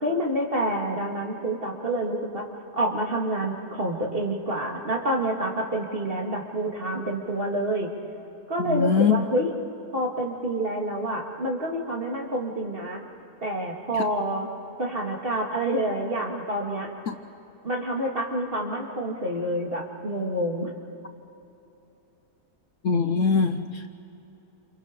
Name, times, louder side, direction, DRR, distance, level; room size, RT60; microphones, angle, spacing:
voice 1, 0.0-2.5 2.7-7.9 8.5-9.5 9.9-13.0 13.4-14.5 14.8-16.9 17.6-20.7, right 1 dB, 35° right, -1 dB, 2.7 m, -28 dB
voice 2, 8.6-9.3 13.9-14.0 17.1-17.2 22.8-23.9, left 5 dB, 60° left, 7 dB, 1.1 m, -23 dB
29.0 x 28.5 x 5.4 m, 3.0 s
omnidirectional pair, 1.7 m